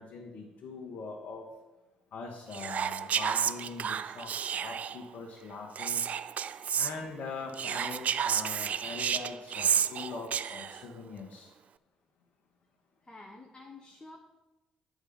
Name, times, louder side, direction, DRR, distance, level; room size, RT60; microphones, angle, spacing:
voice 1, 0.0-1.4 2.1-6.0 6.7-11.5, left 4 dB, 60° left, -2 dB, 1.5 m, -42 dB
Whispering, 2.5-5.0 5.7-6.9 7.5-10.8, right 8 dB, 50° right, 0.4 m, -31 dB
voice 2, 13.0-14.2, left 2 dB, 20° left, 0 dB, 1.3 m, -49 dB
8.0 x 5.2 x 7.2 m, 1.1 s
hypercardioid pair, 50°, 3 cm